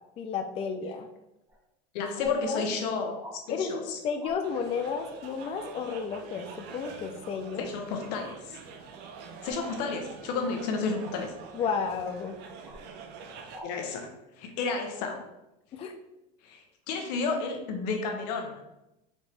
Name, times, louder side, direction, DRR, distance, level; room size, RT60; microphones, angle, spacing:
voice 1, 0.2-1.1 2.2-2.7 3.5-7.7 11.5-12.4 15.7-15.9, left 6 dB, 30° left, 5 dB, 0.4 m, -32 dB
sound 1, 1.5-1.6 2.1-2.3 3.2-3.4 4.2-4.4 6.8-7.0 9.4-9.7 11.0-11.2 12.6-12.8 13.5-13.7 14.9-15.1, right 1 dB, 10° right, 1.2 m, -46 dB
voice 2, 1.9-3.2 3.5-4.0 7.6-8.6 9.4-11.3 13.6-14.1 14.4-15.2 16.4-18.6, left 4 dB, 80° left, 3 dB, 0.9 m, -32 dB
sound 2, 4.4-13.6, right 5 dB, 55° right, 0.6 m, -45 dB
4.3 x 2.9 x 3.3 m, 0.91 s
supercardioid pair, 120°, 21 cm